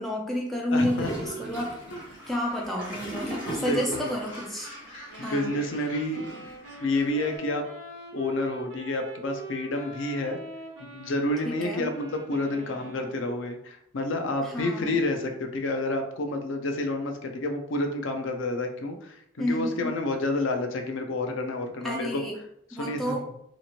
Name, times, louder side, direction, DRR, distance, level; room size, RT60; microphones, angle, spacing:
voice 1, 0.0-1.7 2.3-4.7 5.2-5.5 11.4-11.9 14.4-14.9 19.4-20.0 21.8-22.4 22.7-23.3, left 1 dB, ahead, -2 dB, 0.4 m, -30 dB
voice 2, 0.7-1.1 3.5-4.0 5.2-6.5 6.8-7.6 8.1-10.4 10.8-22.2 22.7-23.1, left 2 dB, 80° left, 5 dB, 0.4 m, -29 dB
Gurgling / Toilet flush, 0.7-4.5, right 1 dB, 45° left, 1.4 m, -37 dB
Gull seagull, 1.5-7.4, equal, 60° left, 1.0 m, -47 dB
sound 1, 5.1-13.5, right 3 dB, 75° right, 0.7 m, -44 dB
2.9 x 2.5 x 2.8 m, 0.73 s
head